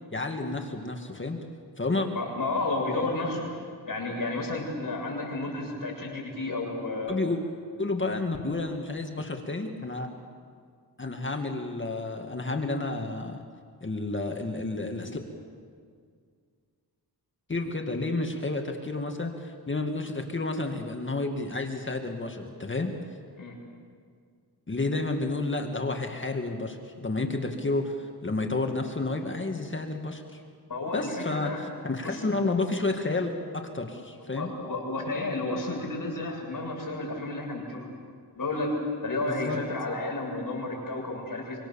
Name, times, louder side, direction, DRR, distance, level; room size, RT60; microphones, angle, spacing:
voice 1, 0.1-1.4 1.8-2.1 7.1-7.4 7.8-10.1 11.0-13.4 13.8-15.2 17.5-22.9 24.7-30.4 30.9-34.5 39.2-39.6, left 2 dB, 30° left, 3 dB, 2.1 m, -30 dB
voice 2, 2.1-3.5 3.9-7.2 23.4-23.6 30.7-31.6 32.0-32.2 34.3-37.9 38.3-38.7 39.0-41.6, left 2 dB, 50° left, -2 dB, 7.4 m, -32 dB
25.5 x 25.0 x 7.2 m, 2.1 s
wide cardioid pair, 105°, 40 cm